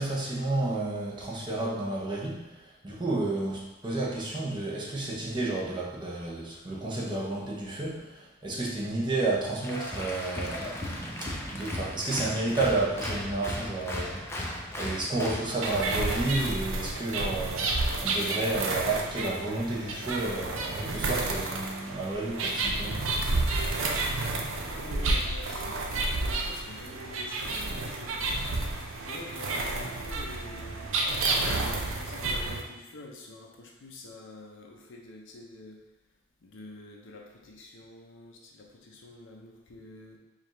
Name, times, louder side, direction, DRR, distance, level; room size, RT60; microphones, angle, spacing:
voice 1, 0.0-14.3 14.8-23.0, right 2 dB, 25° right, -4 dB, 0.7 m, -31 dB
Applause, 9.6-16.3, left 1 dB, 15° left, 0.4 m, -36 dB
sound 1, 15.6-32.6, right 2 dB, 80° right, 0.5 m, -30 dB
voice 2, 24.6-30.8 31.4-35.8 36.4-40.2, left 2 dB, 65° left, 0 dB, 0.6 m, -47 dB
4.8 x 2.4 x 3.1 m, 1.0 s
head